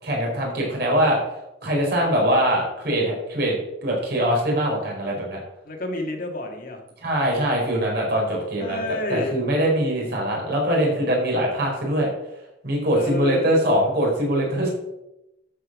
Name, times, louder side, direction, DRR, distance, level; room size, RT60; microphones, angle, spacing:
voice 1, 0.0-1.2 1.6-5.4 7.0-8.8 9.1-12.1 12.6-14.7, equal, 60° right, -2 dB, 4.8 m, -22 dB
voice 2, 5.6-6.8 8.6-9.4 13.0-13.4, left 2 dB, 50° left, 2 dB, 1.8 m, -29 dB
12.5 x 5.5 x 6.2 m, 0.91 s
head